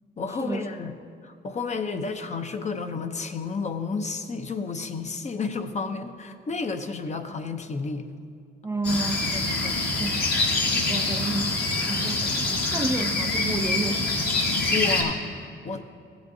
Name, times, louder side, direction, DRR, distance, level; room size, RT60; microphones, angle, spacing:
voice 1, 0.2-0.9 1.2-8.1 14.7-15.8, left 4 dB, 35° left, 6 dB, 0.7 m, -31 dB
voice 2, 8.6-10.4 10.6-11.6 11.9-14.2, right 2 dB, 15° right, 6 dB, 0.4 m, -31 dB
sound 1, 8.8-15.0, left 2 dB, 55° left, 1.8 m, -25 dB
15.0 x 8.0 x 2.7 m, 2.3 s
cardioid pair, 90°, 20 cm